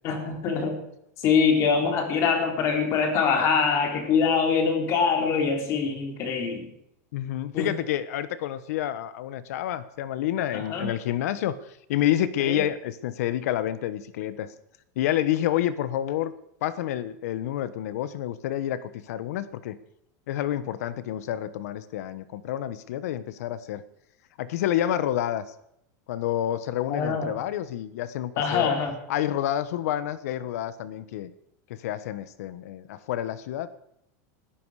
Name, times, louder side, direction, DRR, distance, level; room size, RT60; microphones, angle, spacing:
voice 1, 0.0-0.8 1.2-6.7 7.5-7.7 10.5-10.9 12.5-12.6 26.9-27.3 28.4-28.9, left 5 dB, 30° left, 4 dB, 3.6 m, -24 dB
voice 2, 7.1-14.5 14.9-16.3 16.6-19.8 20.3-23.8 24.4-25.4 26.1-28.7 29.1-31.3 31.7-33.7, left 12 dB, 65° left, 15 dB, 1.3 m, -29 dB
20.5 x 13.5 x 5.0 m, 0.75 s
supercardioid pair, 175°, 9 cm